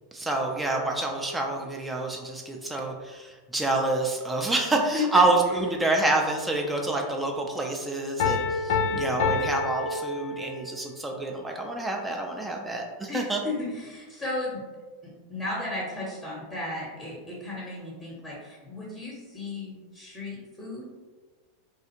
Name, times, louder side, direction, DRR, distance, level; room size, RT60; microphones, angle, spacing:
voice 1, 0.1-13.4, right 2 dB, 10° right, 1 dB, 0.4 m, -27 dB
voice 2, 4.6-5.1 8.8-9.1 13.1-14.6 15.0-20.9, left 2 dB, 5° left, -5 dB, 0.8 m, -35 dB
Piano, 8.2-10.8, left 4 dB, 60° left, 0.4 m, -27 dB
2.5 x 2.3 x 2.8 m, 1.3 s
figure-of-eight pair, 90°, 0 cm